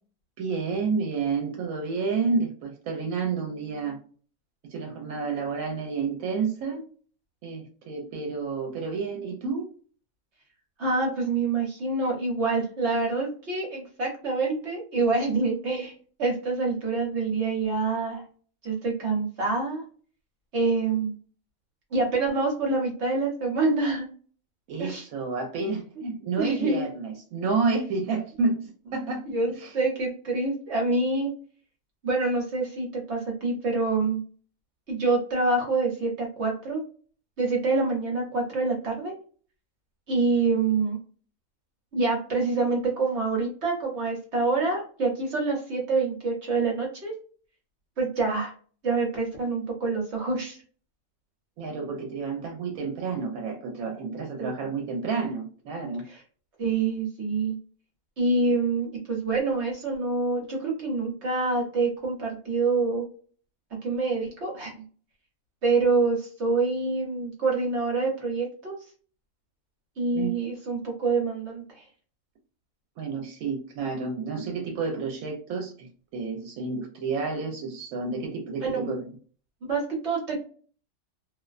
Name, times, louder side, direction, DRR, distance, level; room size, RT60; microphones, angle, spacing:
voice 1, 0.4-4.0 4.7-6.8 7.4-9.7 24.7-29.2 29.5-29.7 51.6-56.0 70.1-70.3 73.0-79.1, right 4 dB, 85° right, 2 dB, 1.0 m, -30 dB
voice 2, 10.8-15.9 16.2-18.2 18.6-19.8 20.5-21.1 21.9-24.1 24.8-25.1 26.4-26.9 29.3-31.3 32.0-34.2 34.9-36.8 37.4-39.1 40.1-41.0 41.9-47.1 48.0-48.5 48.8-50.6 54.4-54.5 56.1-56.2 56.6-57.6 58.2-63.1 63.8-64.8 65.6-68.8 70.0-71.8 78.6-78.9 79.7-80.4, right 3 dB, 55° right, -1 dB, 1.1 m, -26 dB
2.5 x 2.1 x 2.4 m, 0.43 s
omnidirectional pair, 1.4 m